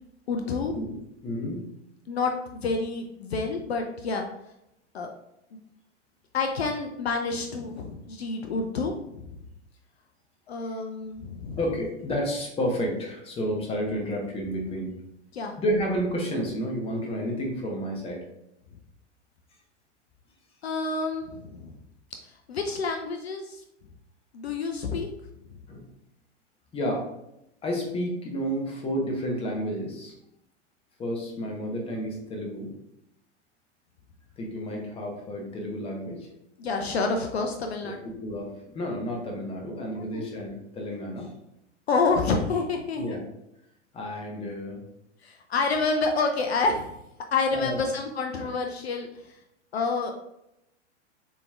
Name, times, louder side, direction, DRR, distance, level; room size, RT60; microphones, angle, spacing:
voice 1, 0.3-0.8 2.1-4.2 4.9-5.1 6.3-9.4 10.5-11.6 15.3-15.5 20.6-21.8 22.2-23.6 24.3-25.1 36.6-38.1 40.1-40.3 41.9-43.2 45.2-47.0 47.3-49.4 49.7-50.1, left 4 dB, 60° left, 4 dB, 0.6 m, -28 dB
voice 2, 1.2-1.6 10.6-10.8 11.6-14.9 15.6-18.3 25.7-25.8 26.7-27.0 27.6-30.1 31.0-32.7 34.4-36.3 37.8-37.9 38.2-41.3 43.0-43.2 43.9-44.8 47.5-47.8, equal, 15° left, 0 dB, 0.9 m, -31 dB
6.8 x 3.1 x 2.4 m, 0.85 s
figure-of-eight pair, 95°, 36 cm